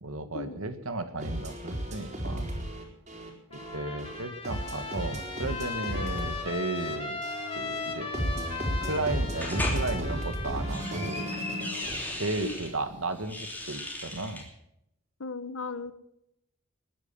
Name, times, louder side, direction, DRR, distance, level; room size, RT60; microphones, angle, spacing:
voice 1, 0.0-2.5 3.5-7.2 7.6-8.1 8.8-11.3 12.1-14.5, right 2 dB, 85° right, 10 dB, 1.8 m, -34 dB
sound 1, 1.2-13.1, equal, 35° right, 4.0 m, -34 dB
Trumpet, 3.5-11.7, left 4 dB, 25° left, 2.5 m, -38 dB
sound 2, 9.4-9.8 10.5-12.7 13.2-14.4, left 2 dB, 10° left, 3.0 m, -36 dB
voice 2, 15.2-15.9, left 4 dB, 75° left, 13 dB, 1.0 m, -36 dB
20.5 x 9.5 x 7.2 m, 0.80 s
head